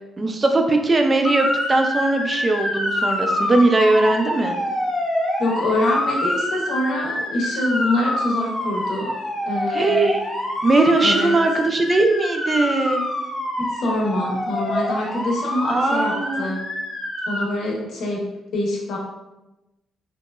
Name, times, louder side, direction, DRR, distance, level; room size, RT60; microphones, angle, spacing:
voice 1, 0.2-4.6 9.7-10.2 10.6-13.0 15.7-16.5, right 2 dB, 30° right, 5 dB, 0.3 m, -19 dB
Motor vehicle (road) / Siren, 1.2-17.5, left 1 dB, 30° left, 1.0 m, -26 dB
voice 2, 5.4-9.1 9.5-10.1 11.0-11.4 13.6-16.6 17.3-18.3 18.5-19.0, left 1 dB, 75° left, -2 dB, 0.7 m, -25 dB
2.9 x 2.2 x 2.2 m, 0.97 s
cardioid pair, 90°, 0 cm